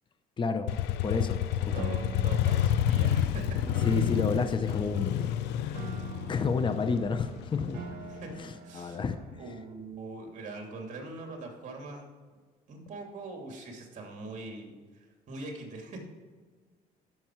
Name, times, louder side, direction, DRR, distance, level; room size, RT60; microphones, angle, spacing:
voice 1, 0.4-0.7 1.0-2.0 3.8-5.3 6.3-7.9 8.3-9.4, left 4 dB, 30° left, 9 dB, 0.8 m, -30 dB
Motorcycle, 0.7-8.3, left 11 dB, 90° left, 0.6 m, -29 dB
voice 2, 1.7-3.7 8.1-8.3 8.6-9.0 9.4-12.1 12.7-16.0, right 2 dB, 45° right, 2 dB, 2.7 m, -42 dB
Piano, 1.7-9.7, right 7 dB, 65° right, 1.5 m, -46 dB
13.0 x 5.9 x 4.6 m, 1.5 s
cardioid pair, 110°, 17 cm